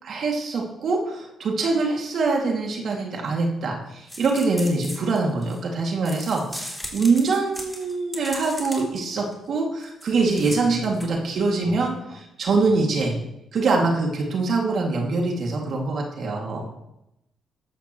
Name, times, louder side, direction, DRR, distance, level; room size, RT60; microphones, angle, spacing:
voice 1, 0.0-13.2 13.5-16.6, right 3 dB, 60° right, 0 dB, 2.5 m, -24 dB
sound 1, 4.1-5.6 6.0-9.0 9.3-9.4 9.8-11.1, equal, ahead, 3.4 m, -37 dB
voice 2, 10.5-10.9 11.6-12.2 16.6-16.7, left 3 dB, 20° left, -3 dB, 5.3 m, -37 dB
14.0 x 11.0 x 3.2 m, 0.85 s
cardioid pair, 90°, 0 cm